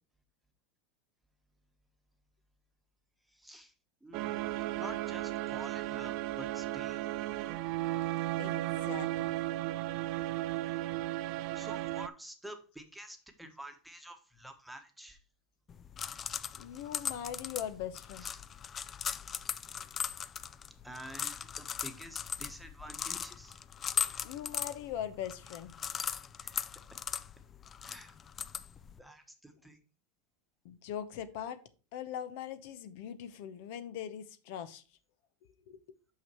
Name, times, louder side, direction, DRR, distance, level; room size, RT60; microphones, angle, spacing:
voice 1, 3.3-3.7 4.0-7.2 11.5-15.2 18.3-18.4 20.8-23.6 26.4-26.7 27.8-28.1 29.0-29.8, right 1 dB, 5° right, 6 dB, 1.2 m, -49 dB
sound 1, 4.1-12.1, right 16 dB, 55° right, 0.4 m, -35 dB
voice 2, 8.4-9.3 16.6-18.3 24.2-25.8 30.6-31.6 31.9-34.8 35.7-35.8, left 10 dB, 65° left, 12 dB, 0.8 m, -41 dB
sound 2, 15.7-29.0, left 7 dB, 30° left, 0.4 m, -39 dB
5.9 x 5.8 x 4.5 m, 0.35 s
supercardioid pair, 115°, 0 cm